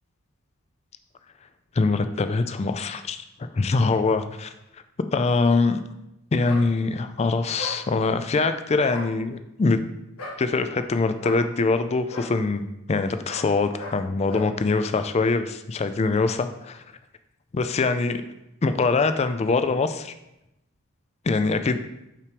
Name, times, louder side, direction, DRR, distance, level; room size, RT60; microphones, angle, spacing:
voice 1, 1.8-4.5 5.1-5.8 6.3-9.8 10.4-16.8 17.5-18.2 18.6-20.1 21.3-21.8, left 3 dB, 30° left, 10 dB, 0.3 m, -23 dB
sound 1, 6.4-6.7 7.6-7.8 8.8-9.1 10.2-10.4 11.2-11.4 12.1-12.3 13.3-13.5 13.8-14.0 14.3-14.5, left 2 dB, 85° left, 1.5 m, -36 dB
5.7 x 4.6 x 5.1 m, 0.88 s
head